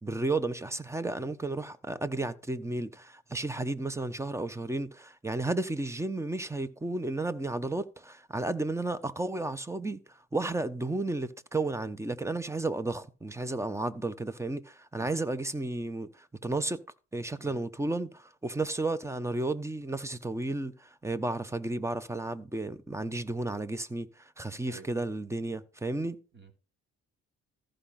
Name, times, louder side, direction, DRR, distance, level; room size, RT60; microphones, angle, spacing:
voice 1, 0.0-16.8 17.1-26.2, right 2 dB, 10° right, 1.0 m, -33 dB
voice 2, 15.0-15.1 17.4-17.6 24.7-24.9 26.3-26.5, right 4 dB, 40° right, 3.0 m, -50 dB
14.0 x 5.0 x 5.8 m
cardioid pair, 90°, 30 cm